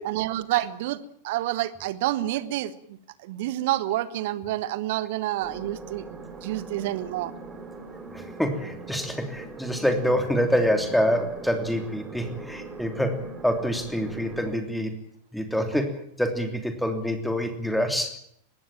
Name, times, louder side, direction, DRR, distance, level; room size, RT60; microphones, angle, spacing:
voice 1, 0.1-1.0 1.2-2.7 3.2-7.3, right 15 dB, 50° right, 16 dB, 1.4 m, -28 dB
sound 1, 5.4-14.6, right 3 dB, 15° right, 5.0 m, -41 dB
voice 2, 8.1-14.9 15.3-18.2, equal, ahead, 6 dB, 3.1 m, -26 dB
22.0 x 16.5 x 8.9 m, 0.69 s
figure-of-eight pair, 90°, 0 cm